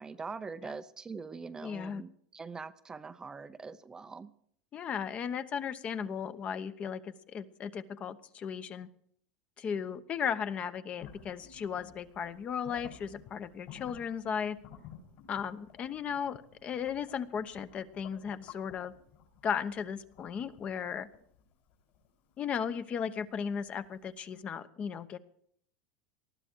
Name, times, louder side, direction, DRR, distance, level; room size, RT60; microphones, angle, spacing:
voice 1, 0.0-4.3, right 4 dB, 15° right, 11 dB, 0.7 m, -43 dB
voice 2, 1.6-2.0 4.7-8.9 9.6-14.6 15.3-18.9 19.4-21.1 22.4-25.2, left 7 dB, 35° left, 11 dB, 1.0 m, -36 dB
sound 1, 11.0-23.9, left 8 dB, 60° left, 5.2 m, -54 dB
19.5 x 13.0 x 4.6 m, 0.64 s
supercardioid pair, 125°, 4 cm